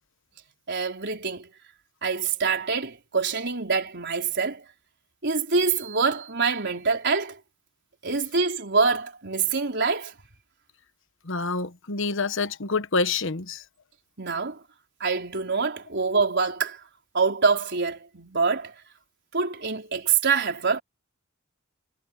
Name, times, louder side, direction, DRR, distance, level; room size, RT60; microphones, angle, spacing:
voice 1, 0.7-1.5 2.0-4.6 5.2-7.4 8.0-10.1 14.2-14.6 15.0-16.8 17.1-18.7 19.3-20.8, right 5 dB, 55° right, 4.5 m, -25 dB
voice 2, 11.2-13.6, left 4 dB, 65° left, 1.2 m, -27 dB
head